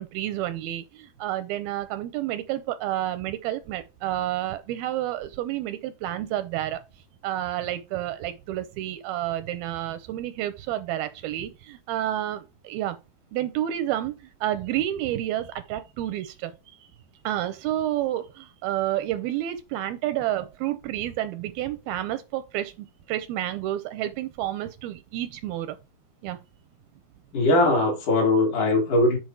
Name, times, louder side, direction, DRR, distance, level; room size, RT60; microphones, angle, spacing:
voice 1, 0.0-6.8 7.2-13.0 13.3-16.5 16.8-16.9 17.2-25.8 26.2-26.4, right 13 dB, 85° right, 2.3 m, -30 dB
voice 2, 27.3-29.2, left 2 dB, 55° left, 3.8 m, -20 dB
8.0 x 5.0 x 4.6 m
omnidirectional pair, 4.7 m